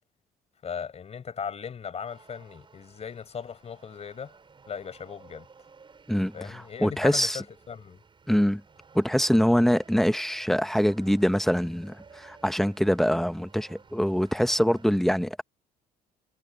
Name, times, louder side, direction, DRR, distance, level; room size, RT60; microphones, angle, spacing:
voice 1, 0.6-4.3 4.7-5.5 6.3-8.0, left 7 dB, 40° left, 5.2 m, -38 dB
sound 1, 2.0-14.9, right 5 dB, 30° right, 6.3 m, -55 dB
voice 2, 6.1-7.4 8.3-8.6 8.9-15.4, equal, ahead, 1.0 m, -24 dB
cardioid pair, 110°, 17 cm